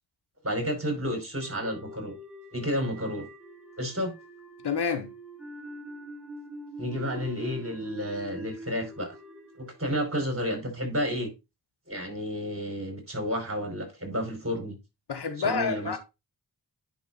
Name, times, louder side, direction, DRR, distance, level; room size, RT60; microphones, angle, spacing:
voice 1, 0.4-2.1 2.5-3.3 3.8-4.1 6.8-9.2 9.6-11.3 11.9-14.8 15.4-16.0, equal, 30° right, 4.6 m, -31 dB
sound 1, 1.4-10.6, equal, ahead, 2.0 m, -44 dB
voice 2, 4.6-5.1 15.1-16.0, left 5 dB, 70° left, 1.1 m, -28 dB
10.5 x 5.7 x 2.5 m
cardioid pair, 55°, 42 cm